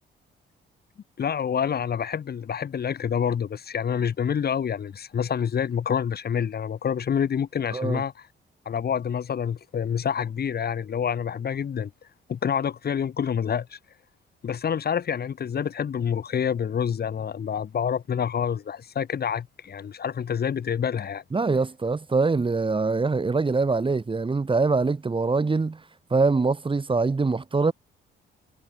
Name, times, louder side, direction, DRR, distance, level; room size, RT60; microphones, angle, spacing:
voice 1, 1.2-8.3 8.6-11.9 12.3-13.8 14.4-21.2, left 7 dB, 50° left, 4.7 m, -27 dB
voice 2, 21.3-25.8 26.1-27.7, right 4 dB, 25° right, 3.4 m, -23 dB
cardioid pair, 90°, 20 cm